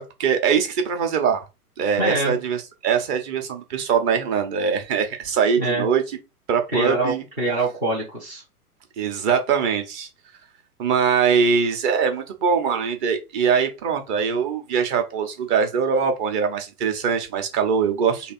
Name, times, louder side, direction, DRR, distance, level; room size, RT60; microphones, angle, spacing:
voice 1, 0.0-1.5 1.8-6.0 6.5-7.2 9.0-10.1 10.8-18.3, right 6 dB, 30° right, 0.9 m, -22 dB
voice 2, 2.0-2.4 5.6-5.9 6.7-8.4, right 2 dB, 10° right, 0.3 m, -24 dB
3.3 x 2.5 x 4.3 m
figure-of-eight pair, 115°, 47 cm